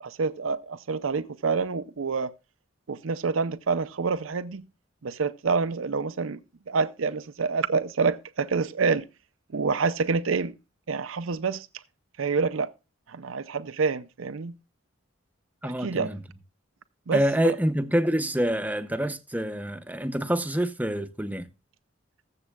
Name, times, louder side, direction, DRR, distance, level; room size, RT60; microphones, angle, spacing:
voice 1, 0.0-2.3 2.9-4.6 5.0-9.0 9.5-10.5 10.9-11.7 12.2-12.7 13.1-14.5 15.6-16.1 17.1-17.6, right 4 dB, 90° right, 0.6 m, -27 dB
voice 2, 15.6-16.2 17.1-21.5, equal, 10° right, 0.7 m, -26 dB
21.0 x 7.4 x 2.3 m
head